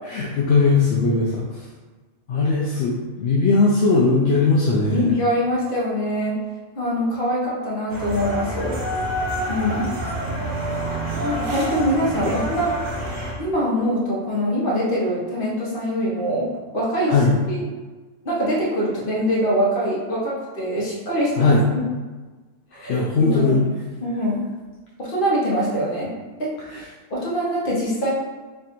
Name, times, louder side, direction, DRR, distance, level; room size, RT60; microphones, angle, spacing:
voice 1, 0.0-1.7 2.3-5.1 11.0-11.2 12.2-12.3 17.1-17.3 21.4-21.7 22.9-23.6 26.6-26.9, left 3 dB, 65° left, -4 dB, 0.7 m, -19 dB
voice 2, 4.9-6.4 6.8-8.8 9.5-9.9 11.2-12.7 13.4-17.2 17.5-17.6 18.2-21.8 22.7-23.6 24.0-24.4 25.0-26.1 26.4-26.5 27.1-28.1, equal, 45° left, -6 dB, 1.2 m, -23 dB
sound 1, 7.9-13.3, right 1 dB, 60° right, 1.2 m, -27 dB
3.3 x 2.5 x 4.3 m, 1.3 s
omnidirectional pair, 1.4 m